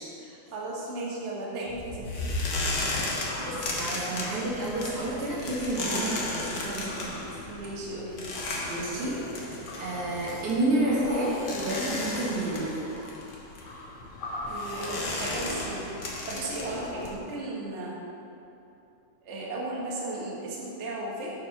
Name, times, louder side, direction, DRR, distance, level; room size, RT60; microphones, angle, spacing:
voice 1, 0.2-2.3 7.5-8.3 14.5-18.0 19.2-21.3, right 2 dB, 50° right, -4 dB, 0.8 m, -36 dB
sound 1, 1.7-17.2, left 2 dB, 75° left, 0.9 m, -34 dB
voice 2, 3.1-7.4 8.7-9.2 9.4-12.9, right 2 dB, 75° right, -6 dB, 3.1 m, -30 dB
8.7 x 4.7 x 5.8 m, 2.8 s
omnidirectional pair, 3.5 m